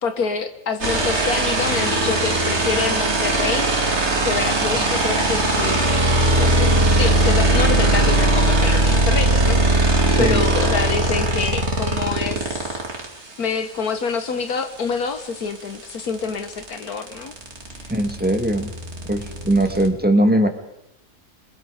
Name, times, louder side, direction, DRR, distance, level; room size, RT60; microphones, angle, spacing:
voice 1, 0.0-3.7 4.2-5.9 6.4-12.8 13.4-17.3, left 5 dB, 85° left, 8 dB, 1.8 m, -27 dB
sound 1, 0.8-13.1 15.2-15.3 15.5-19.9, right 2 dB, 50° right, 2.7 m, -19 dB
voice 2, 10.0-10.4 17.9-18.7 19.1-20.5, right 1 dB, 5° right, 5 dB, 1.8 m, -20 dB
27.5 x 21.0 x 5.0 m, 0.86 s
omnidirectional pair, 1.6 m